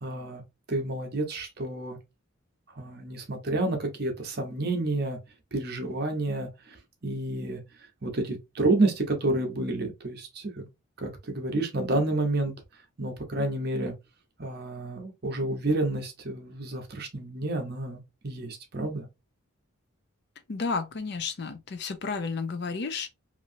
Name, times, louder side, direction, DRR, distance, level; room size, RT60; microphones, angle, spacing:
voice 1, 0.0-0.4 0.7-2.0 2.8-5.2 5.5-6.5 7.0-7.6 8.0-10.7 11.0-12.5 13.0-13.9 14.4-19.0, right 2 dB, 45° right, 0.8 m, -29 dB
voice 2, 20.5-23.1, left 4 dB, 50° left, 0.4 m, -32 dB
3.0 x 2.6 x 2.6 m
head